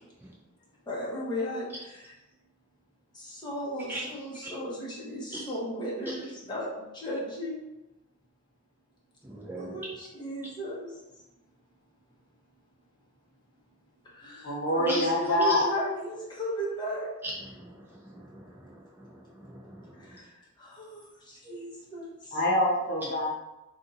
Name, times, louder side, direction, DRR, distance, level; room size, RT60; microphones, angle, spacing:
voice 1, 0.9-2.1 3.1-7.7 9.6-11.0 14.0-17.1 20.0-22.4, equal, 20° left, -5 dB, 0.8 m, -36 dB
voice 2, 9.2-9.8 14.9-15.0 15.5-15.6 17.2-20.2, right 1 dB, 10° right, -4 dB, 0.4 m, -40 dB
voice 3, 14.4-15.6 22.3-23.3, left 1 dB, 50° left, -3 dB, 1.0 m, -25 dB
2.7 x 2.4 x 3.9 m, 0.97 s
head